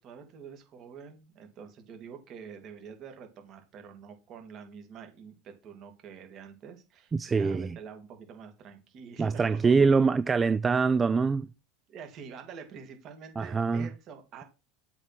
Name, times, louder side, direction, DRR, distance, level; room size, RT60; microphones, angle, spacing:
voice 1, 0.0-9.8 11.9-14.4, right 6 dB, 45° right, 2.6 m, -47 dB
voice 2, 7.1-7.8 9.2-11.5 13.4-13.9, right 4 dB, 20° right, 0.3 m, -24 dB
7.8 x 4.4 x 6.0 m
supercardioid pair, 110°, 0 cm